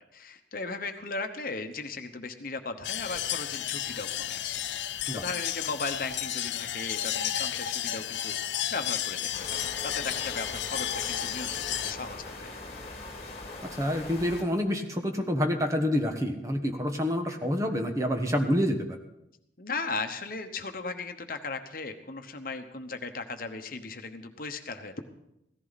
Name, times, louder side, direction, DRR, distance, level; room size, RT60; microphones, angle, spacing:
voice 1, 0.0-4.6 5.1-12.5 19.6-25.0, left 3 dB, 50° left, 6 dB, 1.1 m, -37 dB
sound 1, 2.8-11.9, left 11 dB, 85° left, 0.6 m, -32 dB
sound 2, 9.3-14.4, left 2 dB, 35° left, 2.1 m, -41 dB
voice 2, 13.6-19.0, equal, 20° right, 4 dB, 1.2 m, -28 dB
16.5 x 14.5 x 4.1 m, 0.82 s
head